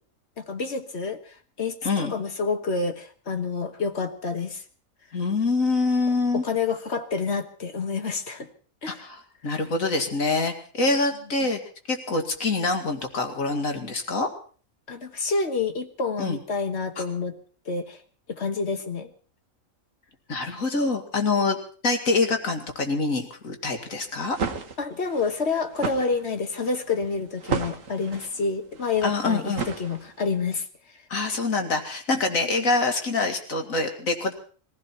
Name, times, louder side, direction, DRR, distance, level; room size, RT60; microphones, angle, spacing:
voice 1, 0.4-4.6 6.3-8.5 8.8-9.0 14.9-17.3 17.6-18.0 18.3-19.1 24.8-30.6 32.5-32.7, left 4 dB, 55° left, 7 dB, 1.5 m, -28 dB
voice 2, 1.8-2.1 5.1-6.4 8.9-11.6 11.9-14.3 16.2-16.4 17.0-17.1 20.3-21.6 21.8-24.4 29.0-29.7 31.1-34.3, left 3 dB, 80° left, 4 dB, 2.6 m, -25 dB
sound 1, 24.1-30.4, right 5 dB, 70° right, 1.7 m, -34 dB
21.5 x 15.5 x 4.4 m, 0.41 s
omnidirectional pair, 1.4 m